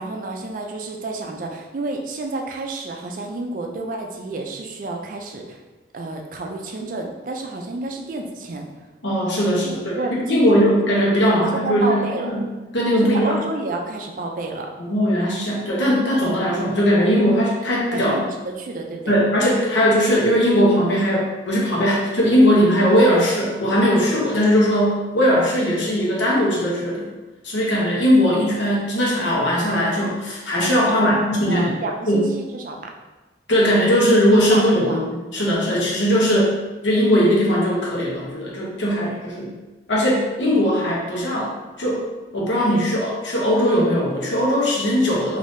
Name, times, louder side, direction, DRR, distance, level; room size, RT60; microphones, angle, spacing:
voice 1, 0.0-5.6 5.9-8.7 9.6-10.6 11.4-12.4 13.0-14.7 17.9-19.1 31.0-32.9 34.5-35.0 35.6-35.8, right 2 dB, 45° right, 2 dB, 0.3 m, -30 dB
voice 2, 9.0-10.0 10.3-12.4 12.7-13.4 14.8-18.2 19.1-27.0 27.4-31.7 32.1-32.3 33.5-36.5 36.8-39.5 39.9-41.5 41.8-42.0 42.3-45.4, equal, 75° left, -4 dB, 0.8 m, -19 dB
3.5 x 2.6 x 2.6 m, 1.2 s
head